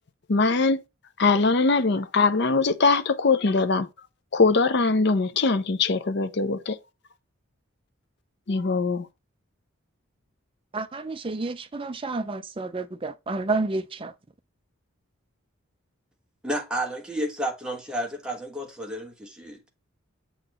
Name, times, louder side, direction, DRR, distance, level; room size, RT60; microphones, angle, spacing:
voice 1, 0.3-0.8 1.2-3.9 4.3-6.8 8.5-9.1, left 3 dB, 50° left, 0.6 m, -22 dB
voice 2, 10.7-14.1, right 3 dB, 25° right, 0.4 m, -30 dB
voice 3, 16.4-19.7, right 1 dB, 5° right, 1.2 m, -31 dB
7.7 x 4.0 x 3.1 m
head